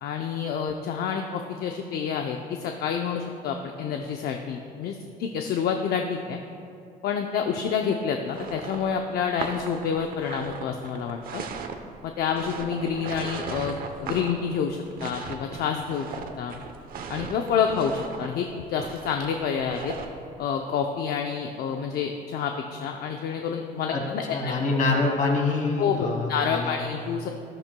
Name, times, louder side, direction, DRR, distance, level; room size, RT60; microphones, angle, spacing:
voice 1, 0.0-6.4 7.0-11.4 12.0-16.5 17.1-19.9 20.4-24.5 25.8-27.3, left 7 dB, 70° left, 4 dB, 0.6 m, -28 dB
sound 1, 8.3-20.2, right 5 dB, 60° right, 0.8 m, -37 dB
voice 2, 24.3-26.8, left 3 dB, 50° left, -1 dB, 2.2 m, -25 dB
13.0 x 12.0 x 2.3 m, 2.5 s
cardioid pair, 110°, 17 cm